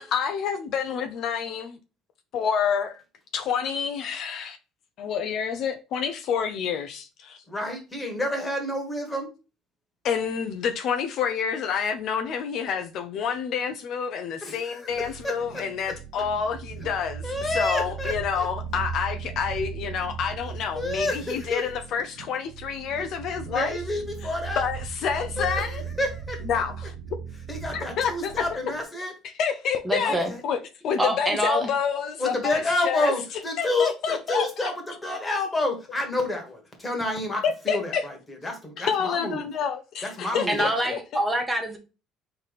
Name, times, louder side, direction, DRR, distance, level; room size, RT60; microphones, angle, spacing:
voice 1, 0.0-1.8 2.3-3.0 3.3-4.6 5.0-7.4 10.0-17.3 17.5-23.8 24.6-25.8 26.5-26.7 27.7-28.3 29.4-30.2 30.4-30.6 30.8-33.1 33.6-34.4 37.4-38.0 38.8-41.0, left 7 dB, 60° left, 0.5 m, -28 dB
voice 2, 7.5-9.3 14.4-15.6 16.8-16.9 17.2-18.5 20.7-21.7 23.0-23.1 23.3-24.6 25.4-26.6 27.5-29.1 30.0-30.4 32.2-39.5 40.0-40.9, left 2 dB, 15° left, 1.5 m, -29 dB
sound 1, 14.9-28.8, right 7 dB, 90° right, 0.7 m, -37 dB
voice 3, 29.9-30.3 31.0-31.7 40.5-41.8, right 1 dB, 10° right, 0.7 m, -25 dB
4.1 x 3.3 x 4.0 m
cardioid pair, 120°, 0 cm